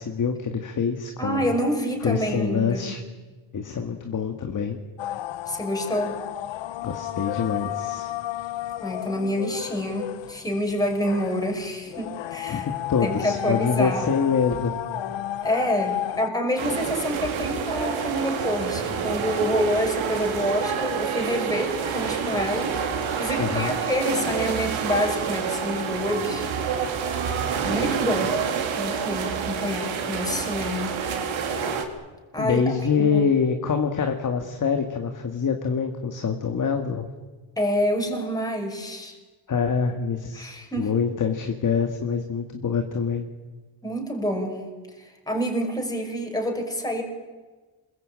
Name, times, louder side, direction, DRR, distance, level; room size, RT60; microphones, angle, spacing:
voice 1, 0.0-1.5 2.0-3.0 3.5-4.8 6.8-8.1 12.5-12.6 12.9-14.8 23.4-23.7 32.4-37.1 39.5-43.2, left 6 dB, 40° left, 5 dB, 2.1 m, -25 dB
voice 2, 1.2-2.9 5.5-6.2 8.8-12.7 13.0-14.1 15.4-22.7 23.1-26.5 27.6-28.4 28.7-31.0 32.3-33.3 37.6-39.2 40.3-40.9 43.8-44.6 45.0-47.0, equal, 10° left, 2 dB, 5.9 m, -27 dB
sound 1, 5.0-16.3, left 13 dB, 70° left, 1.0 m, -33 dB
sound 2, 16.6-31.8, right 6 dB, 80° right, 3.9 m, -28 dB
27.5 x 22.0 x 9.0 m, 1.3 s
cardioid pair, 140°, 47 cm